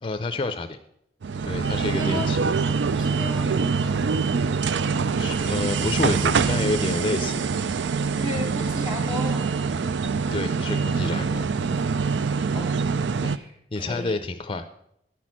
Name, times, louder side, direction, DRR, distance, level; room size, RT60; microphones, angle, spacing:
voice 1, 0.0-0.8 1.4-2.4 5.2-7.4 10.3-11.5 13.2-13.4 13.7-14.7, left 2 dB, 30° left, 9 dB, 0.5 m, -29 dB
sound 1, 1.2-13.4, right 5 dB, 90° right, 0.4 m, -24 dB
voice 2, 1.9-2.3 3.0-3.9 8.1-9.5 11.4-11.8 12.5-12.7 13.2-14.2, left 1 dB, 25° right, 2 dB, 2.5 m, -35 dB
10.0 x 6.1 x 7.3 m, 0.74 s
head